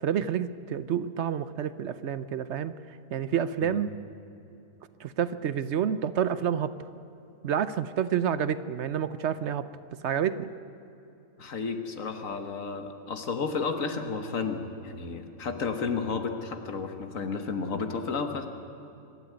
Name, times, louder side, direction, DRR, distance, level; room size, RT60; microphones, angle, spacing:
voice 1, 0.0-2.7 3.1-3.9 5.0-6.7 7.4-9.7 10.0-10.5, right 8 dB, 60° right, 14 dB, 0.8 m, -28 dB
voice 2, 11.4-18.5, left 5 dB, 60° left, 6 dB, 1.6 m, -32 dB
24.0 x 12.5 x 9.3 m, 2.9 s
omnidirectional pair, 1.6 m